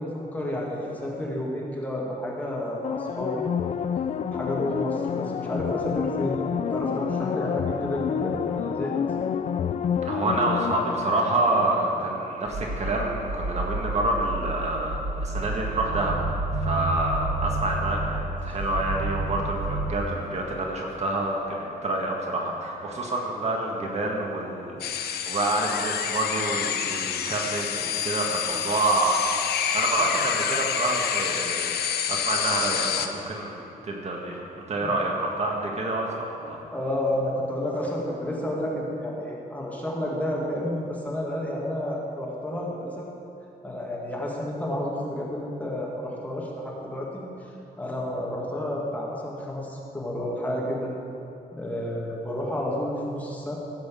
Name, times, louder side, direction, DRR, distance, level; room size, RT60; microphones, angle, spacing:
voice 1, 0.0-3.5 4.3-8.9 18.4-18.6 34.8-35.0 36.7-43.1 43.6-47.2 47.8-50.9 51.5-53.6, left 1 dB, 10° left, -4 dB, 2.1 m, -31 dB
sound 1, 2.8-12.2 12.6-12.7, left 7 dB, 45° left, 0.4 m, -29 dB
voice 2, 10.0-16.2 16.5-29.2 29.6-36.6, right 2 dB, 45° right, -1 dB, 1.7 m, -28 dB
sound 2, 12.4-19.9, right 2 dB, 80° right, 1.4 m, -30 dB
sound 3, 24.8-33.1, left 8 dB, 85° left, 0.8 m, -28 dB
16.0 x 6.2 x 7.6 m, 2.7 s
wide cardioid pair, 145°, 16 cm